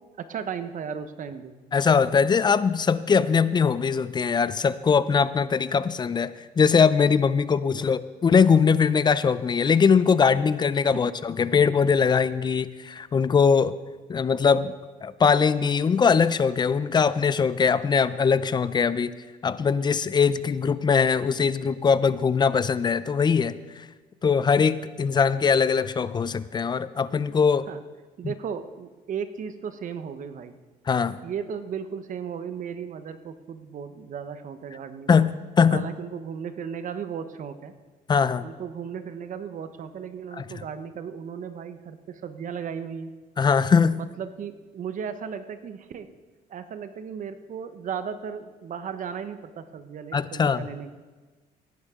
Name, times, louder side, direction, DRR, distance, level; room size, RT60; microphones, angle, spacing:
voice 1, 0.3-1.5 7.7-7.9 27.7-27.8 28.2-30.5 31.2-35.3 35.7-37.7 38.4-43.1 44.0-46.1 46.5-50.9, right 7 dB, 50° right, 10 dB, 0.9 m, -35 dB
voice 2, 1.7-13.7 14.1-14.7 15.0-19.1 19.4-23.9 24.2-27.7 30.9-31.1 35.1-35.9 38.1-38.5 40.4-40.5 43.4-44.0 50.1-50.7, left 6 dB, 25° left, 16 dB, 0.5 m, -21 dB
16.5 x 10.5 x 3.7 m, 1.3 s
cardioid pair, 110°, 17 cm